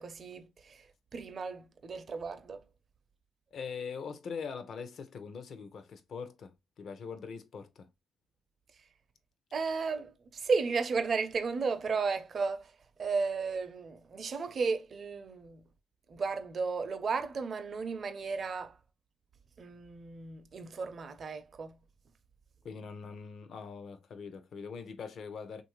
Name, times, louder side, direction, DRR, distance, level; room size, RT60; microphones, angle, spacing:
voice 1, 0.0-2.6 9.5-15.7 16.1-18.8 19.6-21.8, right 4 dB, 45° right, 0.6 m, -34 dB
voice 2, 3.5-7.9 22.6-25.6, left 5 dB, 60° left, 0.6 m, -42 dB
3.1 x 2.6 x 3.0 m
cardioid pair, 90°, 0 cm